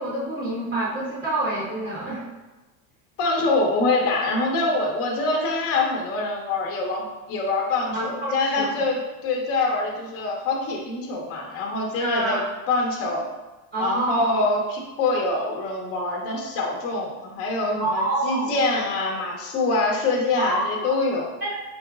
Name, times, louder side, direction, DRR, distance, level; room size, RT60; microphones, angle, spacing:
voice 1, 0.0-2.2 7.9-8.7 12.0-12.4 13.7-14.4 17.8-18.5 20.4-20.9 21.4-21.5, right 2 dB, 25° right, -6 dB, 0.8 m, -27 dB
voice 2, 3.2-13.2 13.8-21.3, left 2 dB, 35° left, 0 dB, 0.7 m, -25 dB
4.7 x 2.9 x 2.3 m, 1.1 s
supercardioid pair, 140°, 41 cm